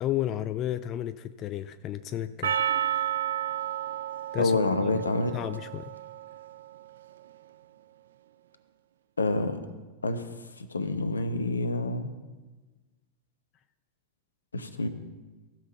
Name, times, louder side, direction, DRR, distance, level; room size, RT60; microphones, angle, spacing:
voice 1, 0.0-2.6 4.3-4.5 5.3-5.9, left 12 dB, 35° left, 13 dB, 0.3 m, -32 dB
Percussion, 2.4-6.9, right 10 dB, 60° right, 0.4 m, -32 dB
voice 2, 4.4-5.3 9.2-9.6 10.0-10.3 10.6-12.1 14.5-14.9, left 2 dB, 75° left, 10 dB, 0.9 m, -27 dB
15.5 x 5.8 x 5.8 m, 1.3 s
figure-of-eight pair, 90°, 0 cm